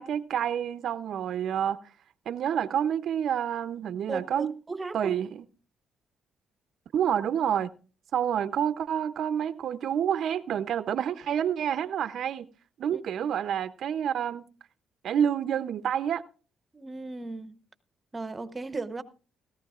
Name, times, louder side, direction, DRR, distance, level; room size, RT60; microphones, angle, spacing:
voice 1, 0.0-1.8 2.3-4.5 4.9-5.3 6.9-7.7 8.1-12.5 12.8-14.5 15.0-16.3, right 9 dB, 70° right, 0.6 m, -28 dB
voice 2, 4.1-5.1 12.9-13.0 16.7-17.6 18.1-19.0, right 3 dB, 25° right, 0.9 m, -36 dB
17.5 x 14.5 x 2.4 m
cardioid pair, 90°, 0 cm